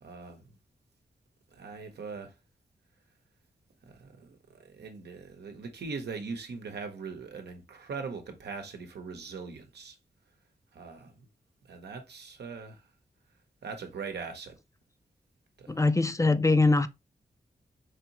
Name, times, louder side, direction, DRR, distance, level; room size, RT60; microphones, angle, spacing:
voice 1, 0.0-0.4 1.5-2.3 3.9-4.4 4.6-10.0 10.7-11.1 11.7-12.8 13.6-14.6 15.6-15.8, right 4 dB, 85° right, 0.9 m, -41 dB
voice 2, 15.7-16.9, left 3 dB, 20° left, 0.4 m, -22 dB
4.7 x 2.7 x 2.9 m
cardioid pair, 70°, 17 cm